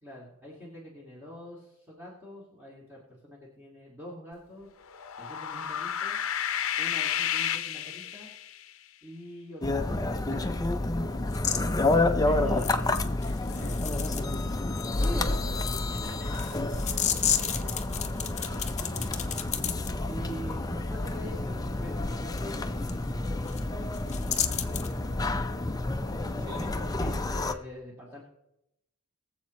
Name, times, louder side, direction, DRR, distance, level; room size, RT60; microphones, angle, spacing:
voice 1, 0.0-4.7 5.2-6.2 6.8-8.3 9.0-10.7 13.5-15.4 20.0-25.4 27.0-28.2, equal, 10° right, -5 dB, 2.3 m, -44 dB
sound 1, 4.9-8.6, left 10 dB, 65° left, 0.7 m, -31 dB
sound 2, 9.6-27.5, left 2 dB, 15° left, 0.5 m, -29 dB
sound 3, 11.3-11.6 12.6-14.4 14.7-19.9 22.3-22.4 22.9-23.0 23.2-23.6 23.9-24.9, left 9 dB, 30° left, 0.9 m, -32 dB
voice 2, 12.2-13.9 15.1-19.2 26.0-27.3, equal, 65° right, -1 dB, 3.7 m, -48 dB
23.0 x 7.6 x 3.1 m, 0.85 s
head